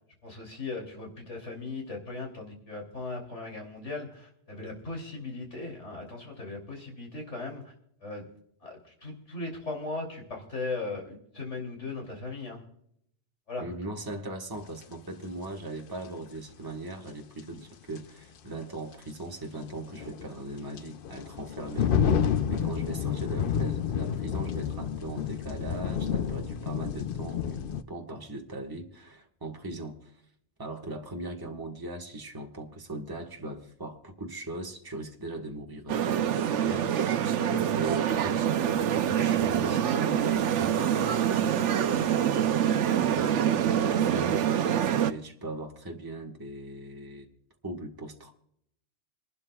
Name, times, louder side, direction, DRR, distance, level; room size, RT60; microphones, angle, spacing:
voice 1, 0.2-7.7 8.0-8.3 8.6-12.6 13.5-13.7 37.4-37.6, left 3 dB, 85° left, 1 dB, 3.4 m, -38 dB
voice 2, 13.6-30.2 30.6-36.9 37.7-42.2 42.8-44.4 45.0-47.3 47.6-48.3, right 2 dB, 20° right, 1 dB, 1.5 m, -39 dB
sound 1, 14.8-14.9 17.4-17.5 18.0-18.1 19.6-27.8, left 7 dB, 55° left, 0.7 m, -29 dB
sound 2, 35.9-45.1, right 9 dB, 85° right, 1.0 m, -25 dB
27.0 x 12.0 x 2.3 m, 0.72 s
omnidirectional pair, 1.2 m